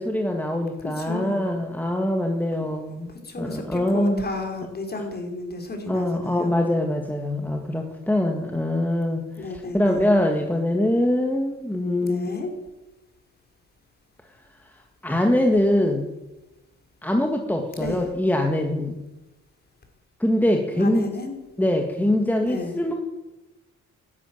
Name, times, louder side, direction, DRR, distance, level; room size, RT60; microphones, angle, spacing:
voice 1, 0.0-4.3 5.9-12.3 15.0-16.1 17.0-19.0 20.2-21.1 21.6-22.9, left 1 dB, 5° left, 3 dB, 1.9 m, -23 dB
voice 2, 0.8-1.5 3.2-6.5 9.4-10.1 12.0-12.5 17.8-18.1 20.7-21.3 22.4-22.7, left 2 dB, 30° left, 4 dB, 4.3 m, -32 dB
13.0 x 11.0 x 9.2 m, 1.0 s
cardioid pair, 90°, 30 cm